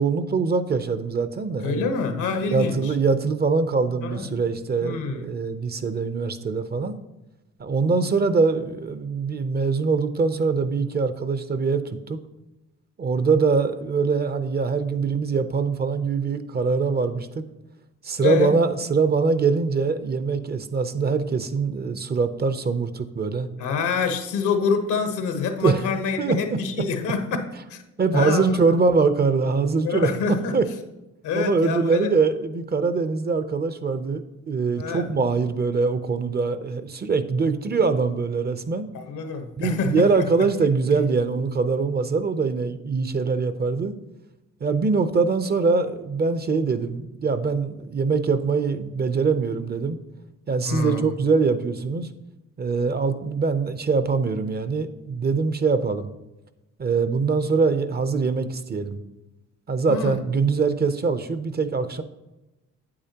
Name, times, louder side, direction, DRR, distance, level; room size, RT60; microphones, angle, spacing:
voice 1, 0.0-1.9 2.5-7.0 7.6-12.2 13.0-17.4 18.0-23.5 25.6-25.8 26.2-26.6 28.0-30.1 30.5-30.6 31.3-38.9 39.6-43.9 44.6-50.0 50.5-52.1 52.6-56.1 56.8-59.0 59.7-62.0, right 4 dB, 35° right, 11 dB, 0.6 m, -23 dB
voice 2, 1.6-2.9 4.0-4.3 4.8-5.3 18.2-18.6 23.6-27.8 28.1-28.8 29.8-30.6 31.2-32.1 34.8-35.1 38.9-40.5 50.6-51.1 59.9-60.2, left 5 dB, 85° left, 7 dB, 1.1 m, -26 dB
8.7 x 8.5 x 2.9 m, 1.0 s
cardioid pair, 90°, 30 cm